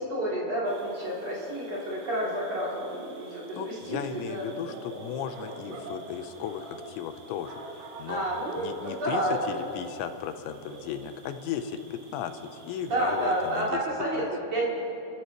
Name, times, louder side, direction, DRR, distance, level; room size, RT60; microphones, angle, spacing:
voice 1, 0.0-4.6 5.7-5.9 8.1-9.4 12.9-14.2 14.5-14.7, right 1 dB, 40° right, -6 dB, 3.5 m, -30 dB
sound 1, 0.6-13.7, right 3 dB, 90° right, 3.6 m, -47 dB
voice 2, 3.3-8.2 8.6-9.2 9.5-13.8 14.1-14.3, left 8 dB, 85° left, 8 dB, 3.0 m, -36 dB
30.0 x 12.5 x 3.0 m, 2.8 s
omnidirectional pair, 5.1 m